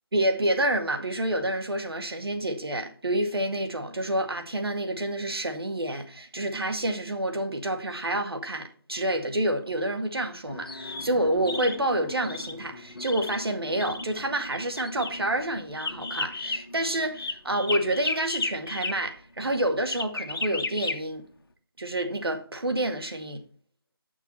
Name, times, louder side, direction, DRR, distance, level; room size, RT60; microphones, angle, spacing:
voice 1, 0.1-21.2 21.8-23.4, right 1 dB, 85° right, 1.9 m, -28 dB
sound 1, 10.5-18.9 19.9-20.9, left 3 dB, 70° left, 1.5 m, -34 dB
8.4 x 6.0 x 4.2 m
figure-of-eight pair, 170°, 12 cm